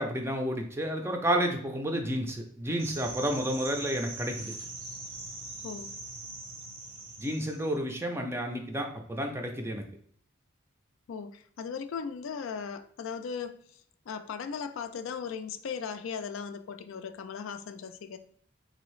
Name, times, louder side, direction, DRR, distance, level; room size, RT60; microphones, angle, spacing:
voice 1, 0.0-4.5 7.2-9.8, equal, 10° right, 0.4 m, -31 dB
sound 1, 2.8-7.7, right 2 dB, 70° right, 0.9 m, -42 dB
voice 2, 11.1-13.8 14.1-18.2, left 6 dB, 75° left, 0.3 m, -37 dB
4.0 x 2.7 x 3.1 m
head